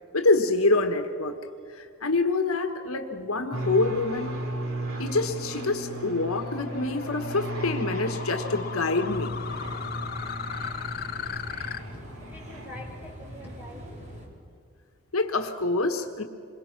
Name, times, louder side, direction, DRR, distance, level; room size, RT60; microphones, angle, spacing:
voice 1, 0.1-1.4 1.7-4.4 5.0-9.4 15.1-16.2, left 3 dB, 70° left, 5 dB, 1.5 m, -26 dB
sound 1, 3.5-13.1, right 1 dB, 70° right, 2.6 m, -35 dB
sound 2, 4.2-11.8, left 7 dB, 45° left, 0.7 m, -38 dB
sound 3, 9.1-14.3, equal, 35° right, 3.8 m, -43 dB
voice 2, 11.3-14.1, left 1 dB, 10° right, 0 dB, 4.5 m, -47 dB
27.5 x 22.0 x 6.0 m, 2.3 s
head